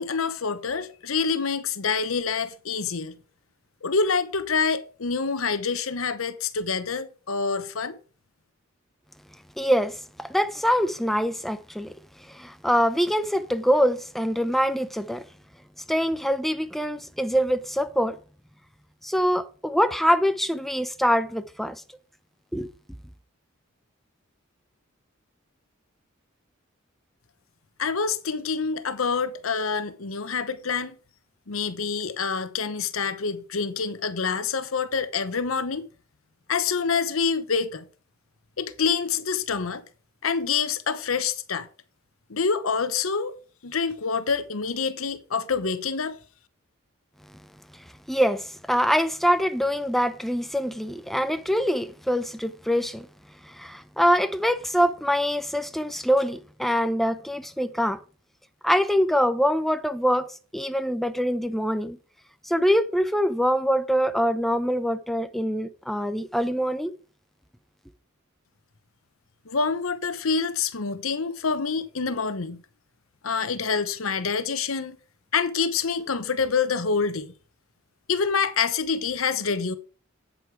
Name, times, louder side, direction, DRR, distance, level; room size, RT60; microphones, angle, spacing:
voice 1, 0.0-3.1 3.8-8.0 27.8-31.0 31.5-35.9 36.5-37.9 38.6-39.8 40.2-41.7 42.3-43.3 43.6-46.2 69.5-72.6 73.2-75.0 75.3-77.3 78.1-79.8, left 5 dB, 85° left, 0.9 m, -26 dB
voice 2, 9.6-11.9 12.3-15.2 15.9-18.2 19.0-21.8 22.5-22.7 48.1-53.1 53.4-58.0 58.6-62.0 62.4-66.9, equal, ahead, 0.7 m, -24 dB
8.6 x 8.2 x 4.6 m
head